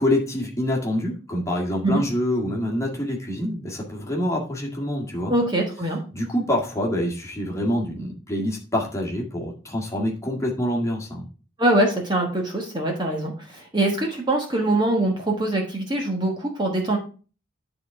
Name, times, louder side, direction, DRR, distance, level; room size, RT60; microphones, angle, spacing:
voice 1, 0.0-5.3 6.1-11.2, left 1 dB, 15° left, -1 dB, 1.9 m, -26 dB
voice 2, 5.3-6.0 11.6-17.0, right 1 dB, 20° right, 0 dB, 1.3 m, -23 dB
10.5 x 3.9 x 4.7 m, 0.36 s
head